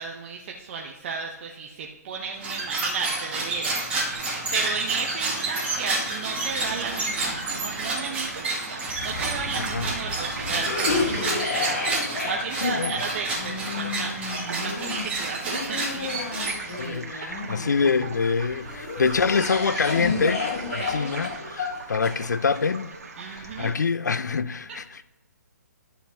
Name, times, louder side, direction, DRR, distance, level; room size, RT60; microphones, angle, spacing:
voice 1, 0.0-8.5 9.0-12.0 12.2-14.1 14.6-16.2 20.8-21.2 23.2-23.7, right 5 dB, 40° right, 0.9 m, -33 dB
sound 1, 2.3-17.0, right 2 dB, 15° right, 2.2 m, -30 dB
sound 2, 4.1-23.7, right 4 dB, 65° right, 1.7 m, -39 dB
Cough, 8.8-18.1 18.6-22.6, left 3 dB, 60° left, 2.7 m, -31 dB
voice 2, 9.6-9.9 12.6-13.0 16.8-20.5 20.7-22.9 23.2-25.0, left 5 dB, 85° left, 0.5 m, -25 dB
12.0 x 7.0 x 2.8 m
hypercardioid pair, 145°, 9 cm